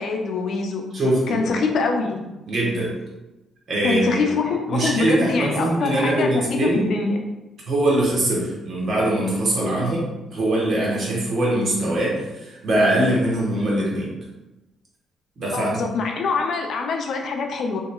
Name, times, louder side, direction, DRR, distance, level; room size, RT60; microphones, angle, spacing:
voice 1, 0.0-0.8 1.3-2.3 3.8-7.2 15.5-17.8, left 4 dB, 65° left, 3 dB, 0.4 m, -24 dB
voice 2, 0.9-1.5 2.5-2.9 3.7-4.2 4.7-6.9 7.7-14.1 15.4-15.7, right 1 dB, 55° right, -4 dB, 1.1 m, -22 dB
2.9 x 2.8 x 2.3 m, 1.0 s
cardioid pair, 90°, 0 cm